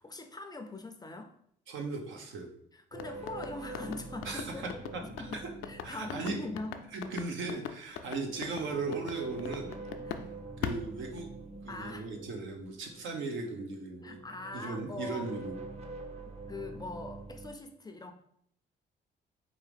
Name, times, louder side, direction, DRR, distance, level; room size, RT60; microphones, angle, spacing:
voice 1, 0.0-1.4 2.7-4.7 4.9-5.4 5.7-6.8 10.0-10.3 11.7-12.1 14.0-15.3 16.5-18.1, left 2 dB, 20° left, 0.4 m, -42 dB
voice 2, 1.7-2.5 4.2-4.7 5.2-5.3 5.8-6.4 6.9-9.7 10.6-11.3 11.6-14.2 14.5-15.5, right 3 dB, 75° right, 0.9 m, -37 dB
sound 1, 2.9-10.3 10.6-11.7, left 8 dB, 85° left, 0.4 m, -40 dB
Deep Space Ambience, 2.9-7.1 7.9-13.7 14.0-17.5, right 2 dB, 30° right, 0.7 m, -46 dB
4.5 x 2.6 x 3.4 m
cardioid pair, 90°, 20 cm